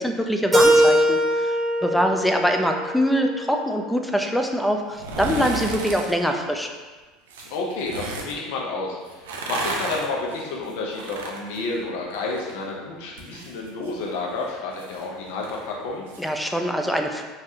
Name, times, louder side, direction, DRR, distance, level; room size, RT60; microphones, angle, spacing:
voice 1, 0.0-6.7 16.2-17.3, equal, 5° left, 4 dB, 0.3 m, -24 dB
Keyboard (musical), 0.5-3.4, equal, 10° right, 0.9 m, -21 dB
voice 2, 1.8-2.2 7.5-16.0, left 3 dB, 70° left, -2 dB, 0.5 m, -30 dB
sound 1, 4.9-6.1 7.3-8.3 9.1-12.6 12.9-16.3 16.6-16.7, right 3 dB, 85° right, 0.4 m, -33 dB
3.2 x 2.3 x 2.6 m, 1.3 s
hypercardioid pair, 95°, 0 cm